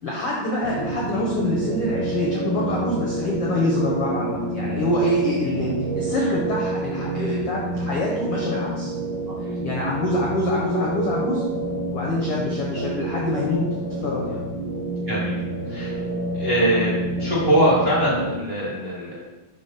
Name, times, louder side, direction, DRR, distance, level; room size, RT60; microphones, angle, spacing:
voice 1, 0.0-8.9 9.4-11.4 11.9-14.4, left 1 dB, 70° left, -3 dB, 1.3 m, -25 dB
sound 1, 0.6-18.3, right 2 dB, 75° right, 2.0 m, -28 dB
voice 2, 15.0-15.4 15.7-16.0 16.3-19.2, right 1 dB, 30° right, -6 dB, 1.0 m, -23 dB
5.3 x 5.0 x 5.7 m, 1.1 s
omnidirectional pair, 4.2 m